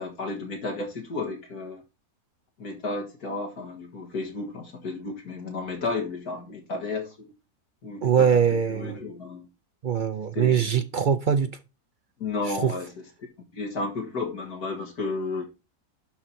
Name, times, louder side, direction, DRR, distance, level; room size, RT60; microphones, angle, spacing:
voice 1, 0.0-1.8 2.6-7.3 7.8-8.3 8.7-9.5 10.4-10.8 12.2-12.9 13.5-15.4, left 3 dB, 80° left, 2.2 m, -32 dB
voice 2, 8.0-9.0 9.8-11.6 12.6-12.7, right 7 dB, 70° right, 0.4 m, -22 dB
11.5 x 4.2 x 4.5 m
omnidirectional pair, 1.6 m